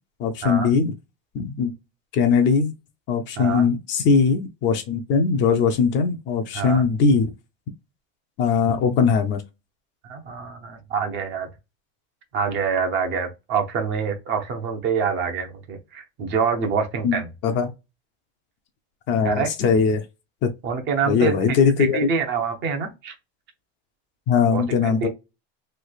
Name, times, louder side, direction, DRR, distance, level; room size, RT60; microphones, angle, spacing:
voice 1, 0.2-0.9 1.3-1.7 2.1-2.7 3.1-7.3 8.4-9.4 17.0-17.7 19.1-20.0 20.4-20.5 21.0-22.1 24.3-25.1, left 5 dB, 40° left, 0.5 m, -20 dB
voice 2, 3.4-3.7 6.5-6.8 10.0-11.5 12.3-17.3 19.2-19.5 20.6-21.3 21.8-23.1 24.5-25.1, right 6 dB, 40° right, 0.7 m, -26 dB
3.1 x 2.8 x 2.3 m
cardioid pair, 160°, 29 cm